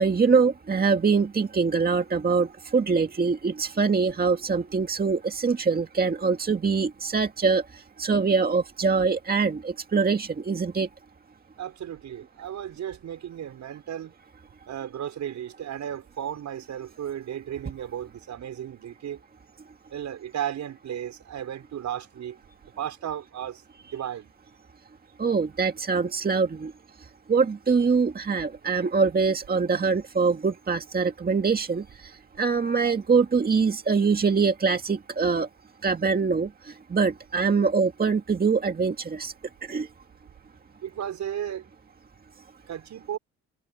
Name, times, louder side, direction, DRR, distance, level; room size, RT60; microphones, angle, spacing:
voice 1, 0.0-7.6 8.0-10.9 25.2-26.7 27.3-31.8 32.4-35.5 35.8-39.3 39.7-39.9, right 5 dB, 30° right, 1.9 m, -24 dB
voice 2, 11.6-14.1 14.7-19.2 19.9-22.4 22.8-23.6 23.9-24.3 40.8-41.6 42.7-43.2, right 10 dB, 65° right, 5.6 m, -34 dB
cardioid pair, 90°, 30 cm